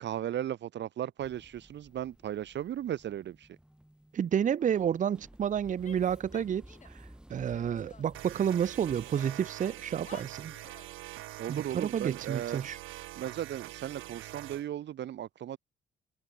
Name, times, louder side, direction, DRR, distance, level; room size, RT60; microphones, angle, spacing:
voice 1, 0.0-3.5 11.4-12.6 13.2-15.6, right 11 dB, 65° right, 1.0 m, -36 dB
sound 1, 1.2-9.2, right 1 dB, 5° right, 3.0 m, -54 dB
voice 2, 4.1-10.5 11.5-12.8, right 8 dB, 40° right, 0.6 m, -30 dB
Female speech woman speaking / Yell, 5.8-7.0 7.3-8.8 9.1-11.0, left 5 dB, 35° left, 2.5 m, -54 dB
sound 2, 8.1-14.7, right 16 dB, 85° right, 0.8 m, -45 dB
cardioid pair, 90°, 20 cm